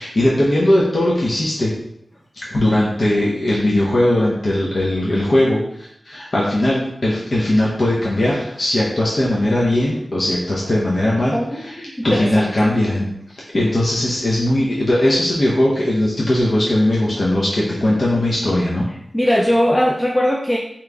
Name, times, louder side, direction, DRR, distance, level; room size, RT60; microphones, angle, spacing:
voice 1, 0.0-1.7 2.3-18.8, left 1 dB, 60° left, -5 dB, 0.8 m, -19 dB
voice 2, 12.1-12.7 19.1-20.6, equal, 20° left, 0 dB, 0.4 m, -18 dB
3.8 x 3.0 x 3.4 m, 0.76 s
wide cardioid pair, 65°, 0 cm